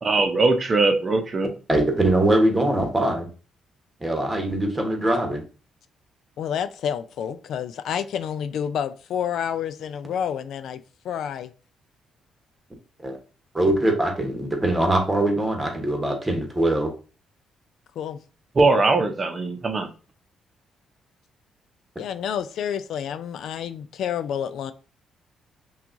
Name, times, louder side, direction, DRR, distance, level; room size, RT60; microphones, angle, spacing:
voice 1, 0.0-1.5 18.6-19.9, right 3 dB, 35° right, 0.7 m, -20 dB
voice 2, 1.7-3.3 4.0-5.4 13.0-13.2 13.5-16.9, right 1 dB, 15° right, 1.1 m, -22 dB
voice 3, 6.4-11.5 18.0-18.2 22.0-24.7, left 8 dB, 75° left, 0.3 m, -29 dB
5.7 x 2.4 x 2.6 m
cardioid pair, 90°, 0 cm